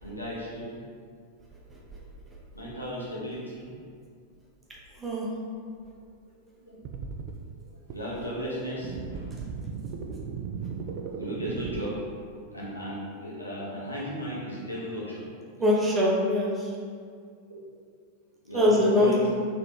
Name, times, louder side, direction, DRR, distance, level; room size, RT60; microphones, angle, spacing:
voice 1, 0.0-0.8 2.5-3.7 6.7-6.8 7.9-9.4 11.1-11.9 12.5-15.2 17.5-17.6 18.4-19.3, equal, 80° left, -6 dB, 1.1 m, -35 dB
sound 1, 6.8-7.3 7.9-8.0 8.8-11.8, right 5 dB, 45° right, 0.4 m, -36 dB
voice 2, 15.6-16.7 18.5-19.3, left 1 dB, 15° right, -4 dB, 0.9 m, -22 dB
4.0 x 3.2 x 3.2 m, 2.1 s
figure-of-eight pair, 90°, 0 cm